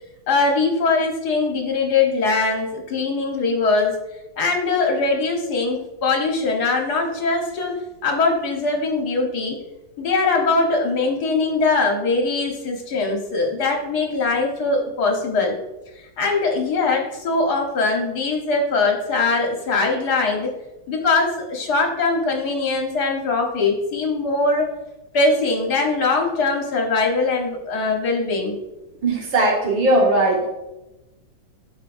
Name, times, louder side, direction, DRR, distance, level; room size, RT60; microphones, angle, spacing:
voice 1, 0.3-3.9 4.4-7.7 8.0-9.6 10.0-15.5 16.2-20.5 20.9-24.7 25.1-28.6, left 3 dB, 60° left, 1 dB, 1.6 m, -21 dB
voice 2, 29.0-30.5, right 1 dB, 85° right, -3 dB, 2.7 m, -18 dB
12.5 x 5.0 x 2.6 m, 0.99 s
omnidirectional pair, 2.1 m